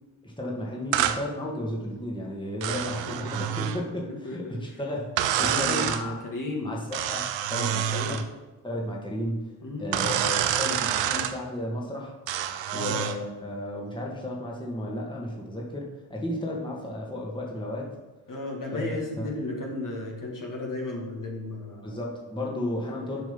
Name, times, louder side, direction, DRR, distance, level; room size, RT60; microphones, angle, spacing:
voice 1, 0.2-6.2 6.6-8.2 8.6-9.5 9.8-12.2 12.7-17.9 18.7-19.3 21.8-23.3, left 1 dB, 10° left, -2 dB, 2.0 m, -33 dB
sound 1, 0.9-1.2 2.6-3.8 5.2-6.0 6.9-8.3 9.9-11.3 12.3-13.2, right 10 dB, 70° right, 0.7 m, -27 dB
voice 2, 4.1-4.8 5.4-6.8 7.5-8.2 9.6-10.0 12.7-13.0 18.3-22.0, left 2 dB, 40° left, -1 dB, 2.3 m, -34 dB
7.7 x 5.1 x 5.4 m, 1.2 s
supercardioid pair, 55°, 47 cm